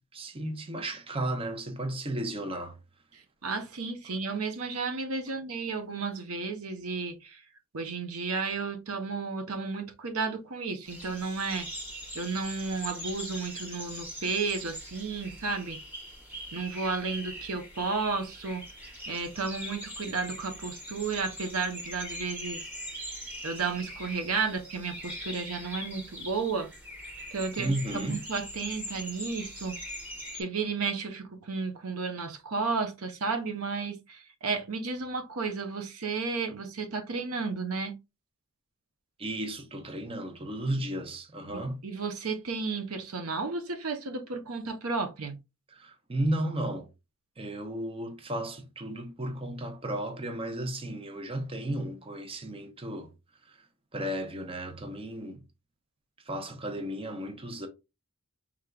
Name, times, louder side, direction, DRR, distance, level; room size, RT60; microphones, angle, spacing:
voice 1, 0.0-2.8 27.6-28.2 39.2-41.8 45.7-46.9 47.4-53.1 53.5-53.6 53.9-55.4 56.3-57.7, right 1 dB, 25° right, 0.7 m, -34 dB
voice 2, 3.1-7.4 7.7-11.7 12.1-15.8 16.5-18.6 19.1-22.6 23.4-26.7 27.3-29.8 30.3-38.0 41.5-45.4, right 4 dB, 75° right, 0.8 m, -33 dB
sound 1, 10.9-30.4, equal, 10° right, 1.2 m, -42 dB
5.0 x 3.5 x 2.3 m
head